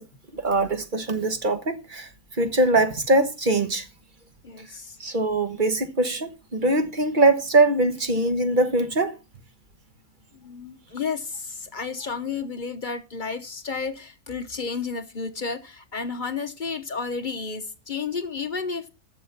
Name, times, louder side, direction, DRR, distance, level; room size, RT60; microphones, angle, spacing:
voice 1, 0.3-2.1 2.4-3.8 5.0-9.1, right 2 dB, 35° right, 1.3 m, -22 dB
voice 2, 4.4-5.0 10.4-18.9, left 5 dB, 35° left, 0.9 m, -32 dB
11.5 x 6.9 x 5.7 m
omnidirectional pair, 1.7 m